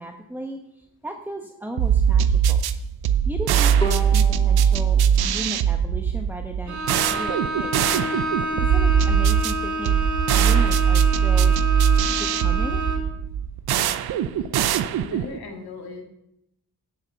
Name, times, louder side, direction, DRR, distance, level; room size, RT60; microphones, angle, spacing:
voice 1, 0.0-2.6 3.2-7.9 8.6-10.0 10.3-11.6 12.1-12.8, right 1 dB, 5° right, 3 dB, 1.1 m, -35 dB
sound 1, 1.8-15.4, right 8 dB, 85° right, 0.6 m, -21 dB
Bowed string instrument, 3.8-6.9, right 1 dB, 10° left, 2.9 m, -36 dB
Bowed string instrument 2, 6.7-13.2, equal, 50° right, 2.2 m, -28 dB
voice 2, 15.0-16.0, left 3 dB, 85° left, 2 dB, 2.1 m, -37 dB
8.9 x 7.5 x 5.8 m, 0.80 s
supercardioid pair, 50°, 37 cm